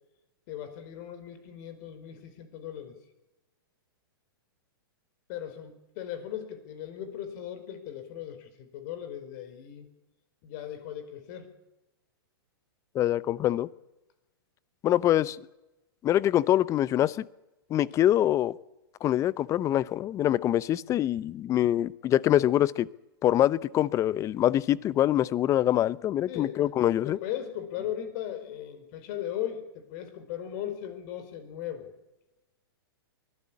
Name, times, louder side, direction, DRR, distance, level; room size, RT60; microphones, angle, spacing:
voice 1, 0.5-3.0 5.3-9.9 10.4-11.5 26.3-26.7 27.0-31.9, left 10 dB, 45° left, 10 dB, 4.7 m, -38 dB
voice 2, 12.9-13.7 14.8-15.4 16.0-17.2 17.7-18.5 19.0-22.9 23.2-27.2, left 12 dB, 25° left, 20 dB, 0.7 m, -24 dB
23.5 x 17.0 x 8.6 m, 0.98 s
hypercardioid pair, 130°, 13 cm